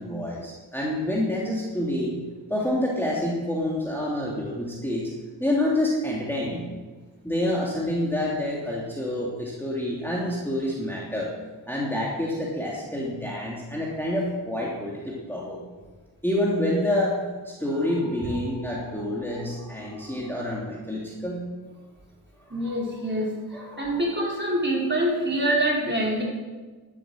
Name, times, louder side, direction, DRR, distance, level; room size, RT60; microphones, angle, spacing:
voice 1, 0.0-2.2 2.5-5.1 5.4-6.7 7.2-11.3 11.7-15.6 16.2-17.2 17.4-21.5 22.4-22.7 23.5-24.0, left 1 dB, 5° left, -5 dB, 3.0 m, -28 dB
voice 2, 22.5-23.3 23.8-26.2, right 1 dB, 25° right, -3 dB, 5.1 m, -25 dB
12.0 x 10.0 x 6.5 m, 1.3 s
cardioid pair, 45°, 43 cm